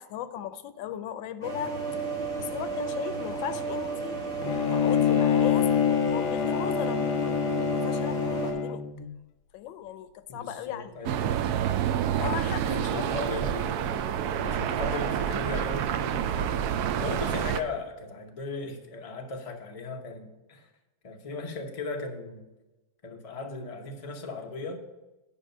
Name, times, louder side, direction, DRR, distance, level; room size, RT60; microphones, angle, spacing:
voice 1, 0.0-2.0 2.4-4.4 4.7-7.0 7.7-8.8 9.5-11.0 12.2-13.0, left 10 dB, 90° left, 12 dB, 1.4 m, -37 dB
sound 1, 1.4-8.5, right 4 dB, 25° right, 2.6 m, -33 dB
Bowed string instrument, 4.4-9.1, left 8 dB, 75° left, 1.1 m, -26 dB
voice 2, 10.3-11.2 12.7-16.6 16.9-20.7 21.0-22.5 23.0-24.8, left 3 dB, 30° left, 3 dB, 0.6 m, -37 dB
sound 2, 11.0-17.6, right 9 dB, 70° right, 0.9 m, -28 dB
10.0 x 5.3 x 5.4 m, 1.0 s
omnidirectional pair, 2.0 m